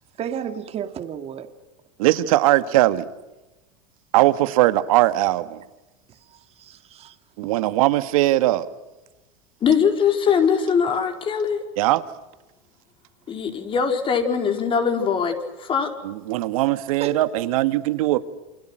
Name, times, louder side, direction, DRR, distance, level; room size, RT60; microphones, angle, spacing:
voice 1, 0.2-1.5 6.6-7.2 17.0-17.2, right 8 dB, 35° right, 2.3 m, -32 dB
voice 2, 2.0-3.0 4.1-5.6 7.4-8.7 11.8-12.0 16.0-18.2, right 16 dB, 80° right, 1.8 m, -20 dB
voice 3, 9.6-11.6 13.3-15.9, left 6 dB, 30° left, 4.6 m, -21 dB
29.0 x 27.5 x 6.4 m
supercardioid pair, 130°, 18 cm